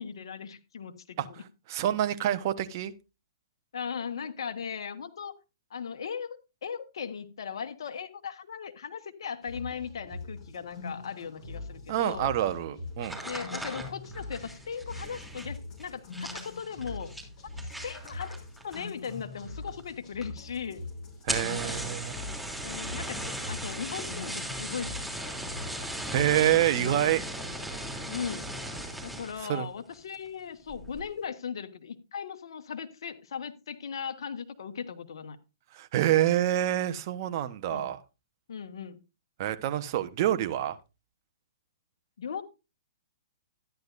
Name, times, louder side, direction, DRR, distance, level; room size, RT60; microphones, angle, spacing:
voice 1, 0.0-1.4 3.7-5.3 5.7-12.3 13.2-17.1 17.6-20.8 22.6-24.9 26.9-27.0 28.1-28.5 29.0-35.4 37.7-37.9 38.5-39.0 42.2-42.4, left 7 dB, 70° left, 1.4 m, -38 dB
voice 2, 1.7-2.9 11.9-13.2 21.2-22.2 26.1-27.2 29.5-29.7 35.7-38.0 39.4-40.8, right 12 dB, 45° right, 1.1 m, -27 dB
sound 1, 9.4-27.1, left 2 dB, 25° left, 5.4 m, -43 dB
sound 2, 13.0-19.1 19.4-19.9 20.2-20.3 20.6-20.7 21.1-29.5 29.9-30.3 30.7-31.1, right 1 dB, ahead, 3.1 m, -37 dB
13.5 x 10.5 x 2.6 m
hypercardioid pair, 135°, 3 cm